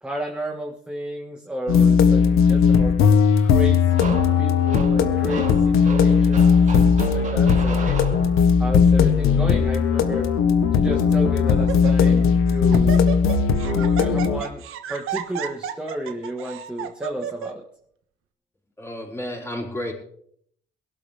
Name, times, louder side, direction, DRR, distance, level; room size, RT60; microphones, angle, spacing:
voice 1, 0.0-2.9 3.4-8.0 8.6-10.3 10.7-13.1 13.6-14.6 14.9-17.6, equal, 5° right, 1 dB, 1.7 m, -32 dB
sound 1, 1.7-14.4, left 6 dB, 80° left, 1.5 m, -18 dB
sound 2, 3.9-8.7, right 4 dB, 35° right, 2.6 m, -36 dB
Laughter, 9.2-9.6 10.3-10.4 10.9-11.2 11.5-12.2 12.5-17.5, right 10 dB, 85° right, 1.4 m, -33 dB
voice 2, 18.8-19.9, left 1 dB, 10° left, -2 dB, 5.1 m, -31 dB
22.5 x 12.0 x 3.5 m, 0.66 s
cardioid pair, 120°, 21 cm